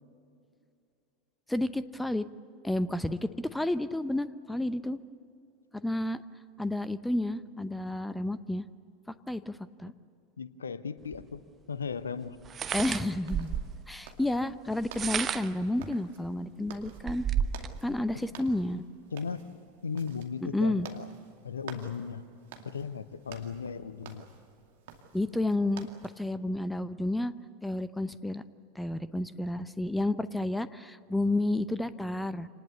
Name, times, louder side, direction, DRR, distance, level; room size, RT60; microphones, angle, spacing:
voice 1, 1.5-2.3 2.6-5.0 5.7-6.2 6.6-8.7 9.1-9.9 12.7-13.6 13.9-17.2 17.8-18.8 20.4-20.9 25.1-27.3 27.6-28.4 28.7-32.5, left 1 dB, 5° left, 15 dB, 0.8 m, -31 dB
voice 2, 10.4-11.4 11.7-12.4 19.1-19.4 19.8-21.1 21.4-22.2 22.6-24.3, left 6 dB, 75° left, 15 dB, 0.8 m, -36 dB
sound 1, 11.1-11.2 12.4-13.8 14.8-15.6 16.2-16.3 16.7-17.8, right 8 dB, 25° right, 1.0 m, -32 dB
sound 2, 13.2-26.2, right 7 dB, 60° right, 2.4 m, -51 dB
27.0 x 19.5 x 8.3 m, 2.5 s
figure-of-eight pair, 85°, 0 cm